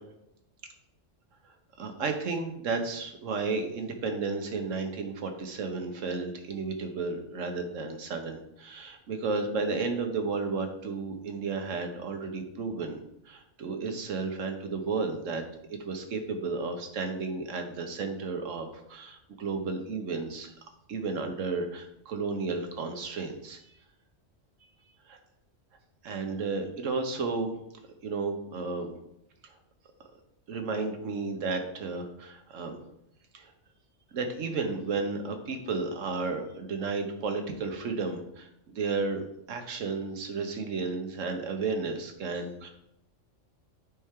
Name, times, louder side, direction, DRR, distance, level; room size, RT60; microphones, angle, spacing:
voice 1, 1.8-13.0 13.3-15.4 15.7-20.5 20.9-23.6 25.1-25.2 26.0-27.5 28.0-28.9 29.4-29.5 30.5-32.8 33.3-33.5 34.1-38.5 38.7-42.7, right 4 dB, 90° right, 5 dB, 1.3 m, -33 dB
9.2 x 4.3 x 3.7 m, 0.79 s
omnidirectional pair, 1.3 m